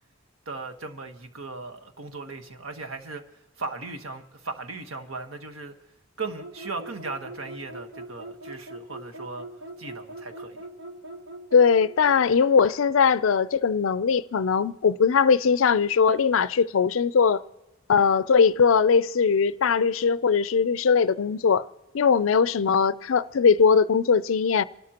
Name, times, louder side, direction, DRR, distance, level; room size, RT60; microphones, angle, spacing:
voice 1, 0.5-3.3 3.6-5.8 6.2-9.5 9.8-10.6, right 3 dB, 85° right, 1.3 m, -37 dB
sound 1, 6.4-12.2, right 1 dB, 55° right, 0.9 m, -41 dB
voice 2, 11.5-17.4 17.9-21.7 21.9-24.6, left 6 dB, 70° left, 0.5 m, -20 dB
27.0 x 12.5 x 2.9 m
head